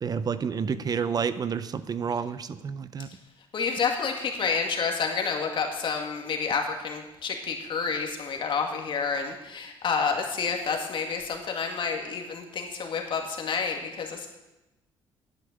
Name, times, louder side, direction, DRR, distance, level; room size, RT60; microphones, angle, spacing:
voice 1, 0.0-3.1, right 6 dB, 40° right, 14 dB, 0.6 m, -29 dB
voice 2, 3.5-14.3, left 5 dB, 55° left, 3 dB, 2.2 m, -29 dB
10.0 x 8.5 x 6.8 m, 0.99 s
cardioid pair, 90°, 10 cm